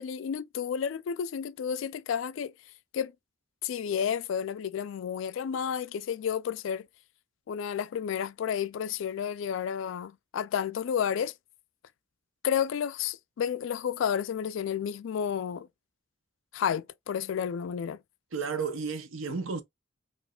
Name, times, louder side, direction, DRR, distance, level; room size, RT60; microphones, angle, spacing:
voice 1, 0.0-2.5 2.9-3.1 3.6-6.9 7.5-11.3 12.4-15.7 16.5-18.0, left 8 dB, 70° left, 0.3 m, -31 dB
voice 2, 18.3-19.6, right 5 dB, 75° right, 0.7 m, -32 dB
4.9 x 2.5 x 2.3 m
head